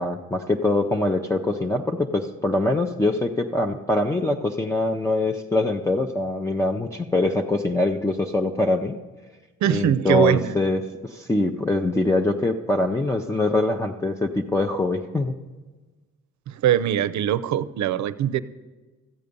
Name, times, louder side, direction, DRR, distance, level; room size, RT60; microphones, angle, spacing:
voice 1, 0.0-9.0 9.7-15.3, left 2 dB, 10° left, 3 dB, 0.6 m, -23 dB
voice 2, 9.6-10.5 16.5-18.4, right 11 dB, 70° right, 16 dB, 0.6 m, -22 dB
14.0 x 8.3 x 5.3 m, 1.3 s
cardioid pair, 90°, 30 cm